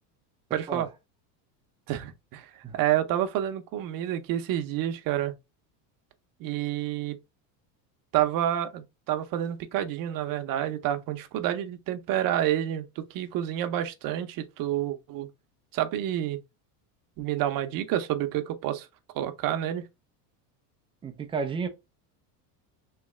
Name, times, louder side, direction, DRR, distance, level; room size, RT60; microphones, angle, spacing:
voice 1, 0.5-0.9 1.9-5.3 6.4-7.2 8.1-15.3 15.7-16.4 17.2-18.9 19.1-19.9, right 12 dB, 45° right, 0.7 m, -29 dB
voice 2, 21.0-21.7, right 5 dB, 15° right, 0.3 m, -31 dB
3.2 x 2.9 x 3.5 m
supercardioid pair, 115°, 48 cm